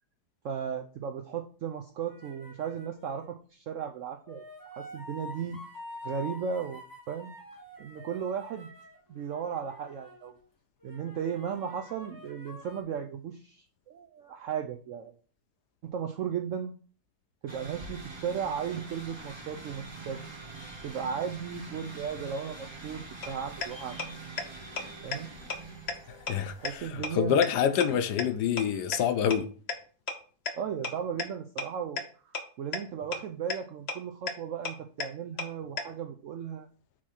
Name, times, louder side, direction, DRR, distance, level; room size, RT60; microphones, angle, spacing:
voice 1, 0.4-4.4 4.7-5.6 6.0-6.8 7.1-7.3 7.8-8.7 9.1-10.4 10.8-15.1 15.8-16.7 17.4-20.4 20.8-24.0 25.0-25.3 26.4-27.5 27.9-28.0 30.5-36.7, right 7 dB, 75° right, 0.7 m, -36 dB
sound 1, 2.1-3.3 4.2-10.4 10.8-12.8, left 1 dB, 15° left, 0.8 m, -47 dB
sound 2, 17.5-27.1, right 3 dB, 30° right, 0.5 m, -44 dB
sound 3, 23.2-23.3 23.6-23.7 24.0-24.1 24.4-24.5 24.8-24.9 25.1-25.2 25.5-25.6 25.9-26.0 26.3-26.4 26.7-26.8 27.0-27.1 27.4-27.5 27.8-27.9 28.2-28.3 28.6-28.7 28.9-29.0 29.3-29.4 29.7-29.8 30.1-30.2 30.5-30.6 30.8-30.9 31.2-31.3 31.6-31.7 32.0-32.1 32.3-32.4 32.7-32.8 33.1-33.2 33.5-33.6 33.9-34.0 34.3-34.4 34.7-34.8 35.0-35.1 35.4-35.5 35.8-35.9, left 4 dB, 50° left, 0.8 m, -31 dB
voice 2, 26.1-29.5, left 8 dB, 75° left, 1.2 m, -27 dB
6.3 x 3.0 x 5.7 m
omnidirectional pair, 1.8 m